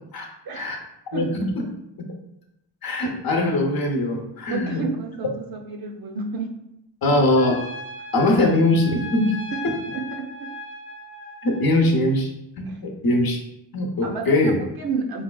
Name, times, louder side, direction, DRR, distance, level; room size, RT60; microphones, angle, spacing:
voice 1, 1.1-1.5 2.8-4.8 7.0-7.6 8.1-9.3 11.4-12.3 12.6-13.4 13.7-14.6, left 1 dB, 50° left, 1 dB, 0.8 m, -21 dB
voice 2, 4.5-6.5 7.1-7.2 8.0-8.1 9.5-9.6 9.9-10.5 12.6-12.8 14.0-15.2, right 4 dB, 50° right, 2 dB, 0.6 m, -30 dB
Trumpet, 7.4-11.7, left 1 dB, 15° left, 0.8 m, -37 dB
4.7 x 2.3 x 2.2 m, 0.83 s
cardioid pair, 90°, 46 cm